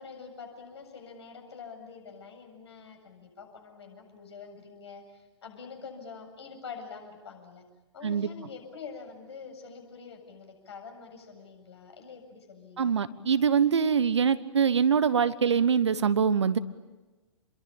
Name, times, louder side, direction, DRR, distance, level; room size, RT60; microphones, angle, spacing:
voice 1, 0.0-7.6 7.9-12.9, left 5 dB, 60° left, 4 dB, 7.6 m, -46 dB
voice 2, 12.8-16.6, right 7 dB, 65° right, 14 dB, 1.3 m, -24 dB
29.0 x 22.5 x 8.9 m, 1.2 s
figure-of-eight pair, 110°, 16 cm